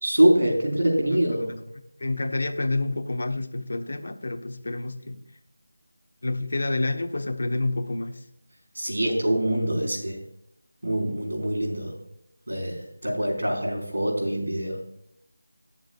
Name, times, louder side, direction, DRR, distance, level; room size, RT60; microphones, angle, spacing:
voice 1, 0.0-1.6 8.7-10.2 10.8-12.0 12.5-14.9, right 1 dB, 80° right, 1 dB, 4.7 m, -24 dB
voice 2, 2.0-5.2 6.2-8.2 13.1-13.2 13.5-13.6, left 2 dB, 55° left, 6 dB, 1.2 m, -28 dB
18.5 x 7.4 x 2.4 m, 0.76 s
figure-of-eight pair, 175°, 0 cm